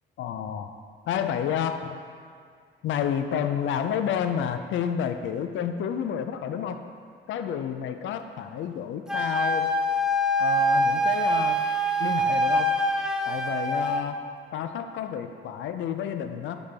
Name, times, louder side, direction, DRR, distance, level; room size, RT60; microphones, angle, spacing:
voice 1, 0.2-0.7 1.1-2.0 2.8-6.8 7.3-9.7 10.4-11.6 12.0-12.8 13.3-14.2 14.5-16.6, left 8 dB, 75° left, 8 dB, 0.5 m, -30 dB
Wind instrument woodwind instrument, 9.1-14.1, equal, 5° right, 0.5 m, -24 dB
8.3 x 4.2 x 3.5 m, 2.2 s
cardioid pair, 90°, 20 cm